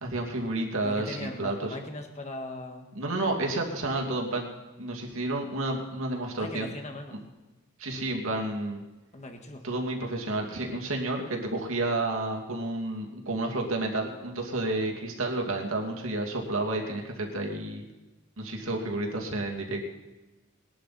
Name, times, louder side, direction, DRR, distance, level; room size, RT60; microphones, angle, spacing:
voice 1, 0.0-1.8 3.0-4.5 4.8-6.7 7.8-8.8 9.6-17.8 18.4-19.8, right 2 dB, 70° right, 0 dB, 2.5 m, -30 dB
voice 2, 0.8-2.9 6.4-7.2 9.1-9.7, left 2 dB, 30° left, 4 dB, 1.6 m, -39 dB
21.0 x 11.5 x 4.3 m, 1.1 s
head